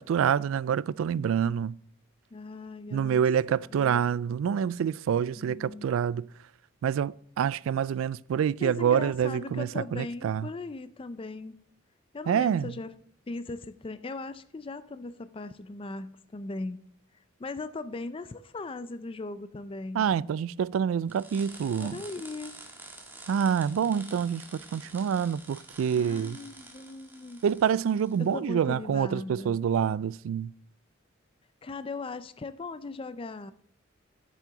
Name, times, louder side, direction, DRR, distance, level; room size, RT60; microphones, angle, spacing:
voice 1, 0.0-1.8 2.9-6.3 6.8-10.5 12.3-12.7 19.9-22.0 23.3-26.4 27.4-30.5, right 8 dB, 75° right, 0.3 m, -27 dB
voice 2, 2.3-3.2 3.7-4.1 5.4-5.9 8.6-11.6 12.1-12.9 13.3-16.8 17.4-20.1 21.8-22.5 26.0-27.4 28.2-29.6 31.6-33.5, left 3 dB, 25° left, 0.4 m, -38 dB
sound 1, 21.1-28.3, right 2 dB, 10° right, 1.6 m, -48 dB
9.3 x 7.4 x 3.9 m
head